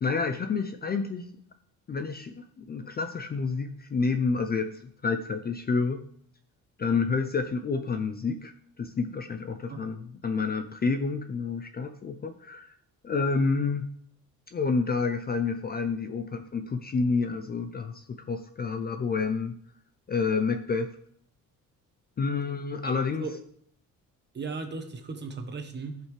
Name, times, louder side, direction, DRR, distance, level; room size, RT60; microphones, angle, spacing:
voice 1, 0.0-1.3 1.9-6.0 6.8-8.5 8.8-12.7 13.0-13.9 14.5-19.6 20.1-21.0 22.2-23.3, left 4 dB, 25° left, 8 dB, 0.5 m, -29 dB
voice 2, 22.8-23.4 24.3-26.1, right 4 dB, 30° right, 5 dB, 1.2 m, -37 dB
15.0 x 5.5 x 3.3 m, 0.65 s
cardioid pair, 160°, 35 cm